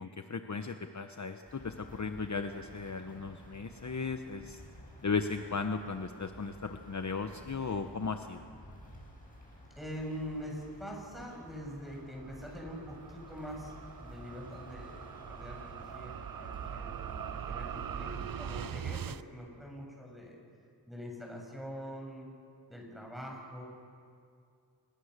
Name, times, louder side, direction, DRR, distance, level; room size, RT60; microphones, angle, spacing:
voice 1, 0.0-4.6 5.0-8.5, left 4 dB, 45° left, 7 dB, 1.0 m, -36 dB
sound 1, 1.5-19.0, equal, 20° left, 8.0 m, -52 dB
voice 2, 9.8-20.4 20.9-22.3 22.7-23.7, equal, ahead, -1 dB, 7.4 m, -44 dB
sound 2, 11.4-19.2, right 9 dB, 55° right, 0.6 m, -42 dB
28.0 x 21.5 x 6.7 m, 2.3 s
wide cardioid pair, 70°, 41 cm